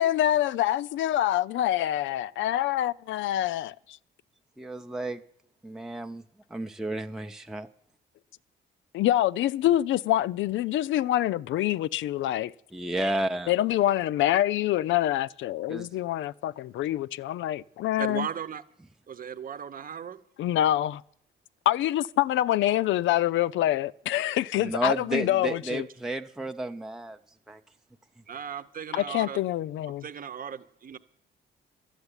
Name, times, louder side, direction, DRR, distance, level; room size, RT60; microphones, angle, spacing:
voice 1, 0.0-3.7 8.9-12.5 13.5-18.3 20.4-21.0 21.7-25.8 28.9-30.0, left 13 dB, 75° left, 0.5 m, -26 dB
voice 2, 4.6-5.2 5.6-6.2 6.5-7.7 12.7-13.5 15.7-15.9 24.6-27.2 27.5-27.6, right 1 dB, ahead, 0.6 m, -32 dB
voice 3, 18.0-18.6 19.1-20.2 28.3-29.4 30.0-31.0, right 7 dB, 45° right, 0.9 m, -36 dB
12.0 x 7.9 x 9.8 m
cardioid pair, 90°, 20 cm